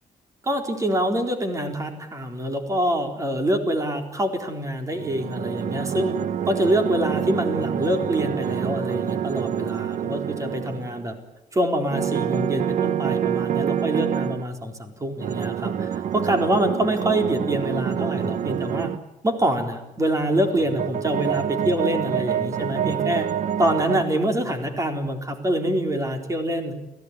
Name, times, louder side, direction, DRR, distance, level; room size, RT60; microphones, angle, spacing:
voice 1, 0.4-6.2 6.4-11.1 11.5-18.9 19.2-23.3 23.6-26.7, right 1 dB, 20° right, 5 dB, 4.0 m, -25 dB
sound 1, 4.9-11.1 11.9-14.4 15.2-19.0 20.3-24.0, right 9 dB, 60° right, 0.9 m, -27 dB
29.5 x 16.5 x 9.8 m, 0.96 s
cardioid pair, 145°, 15 cm